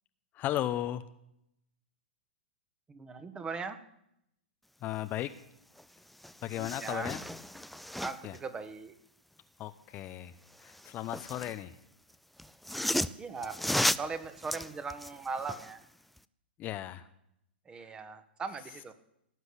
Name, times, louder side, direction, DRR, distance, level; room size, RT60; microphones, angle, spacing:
voice 1, 0.3-1.0 4.8-5.3 6.4-7.2 8.2-8.4 9.6-11.8 16.6-17.1, left 13 dB, 30° left, 11 dB, 0.8 m, -35 dB
voice 2, 2.9-3.8 6.5-7.1 8.0-8.9 13.1-13.6 13.9-15.8 17.6-18.9, right 4 dB, 15° right, 10 dB, 1.5 m, -39 dB
sound 1, 5.8-5.9 6.1-8.4 10.5-11.6 12.4-15.8 16.2-16.3, left 1 dB, ahead, 0.5 m, -34 dB
17.5 x 7.9 x 9.9 m, 0.79 s
figure-of-eight pair, 105°, 6 cm